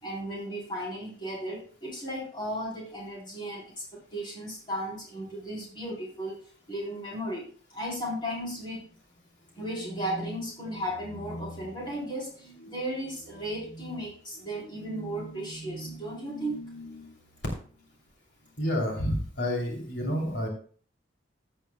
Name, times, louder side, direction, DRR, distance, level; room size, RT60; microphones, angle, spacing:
voice 1, 0.0-6.4 6.7-7.4 7.7-8.8 9.5-17.2 17.5-17.9 18.4-18.5, equal, 25° left, -4 dB, 3.8 m, -35 dB
voice 2, 18.6-20.5, equal, 70° left, -1 dB, 2.8 m, -29 dB
14.5 x 8.8 x 2.2 m, 0.43 s
head